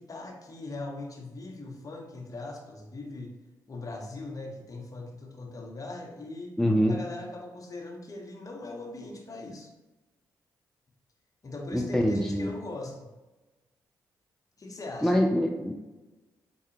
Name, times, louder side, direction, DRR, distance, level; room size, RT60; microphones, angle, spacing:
voice 1, 0.0-3.3 3.7-6.6 6.9-9.7 11.4-13.1 14.6-15.3, left 2 dB, 40° left, 1 dB, 0.9 m, -40 dB
voice 2, 6.6-7.0 11.7-12.5 15.0-15.7, equal, 5° left, 2 dB, 0.4 m, -24 dB
4.6 x 2.3 x 2.8 m, 1.1 s
hypercardioid pair, 45°, 9 cm